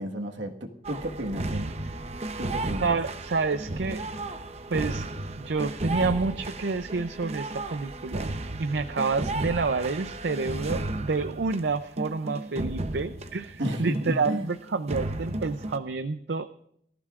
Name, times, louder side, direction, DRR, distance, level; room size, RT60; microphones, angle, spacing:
voice 1, 0.0-1.7 2.4-2.8 13.6-14.5, right 1 dB, 85° right, 3 dB, 1.6 m, -32 dB
sound 1, 0.8-14.6 14.9-15.8, right 2 dB, 35° right, 0.8 m, -34 dB
voice 2, 2.8-4.1 4.7-5.1 5.4-8.3 8.6-16.5, right 4 dB, 70° right, 10 dB, 0.5 m, -29 dB
23.5 x 14.5 x 2.5 m, 0.69 s
head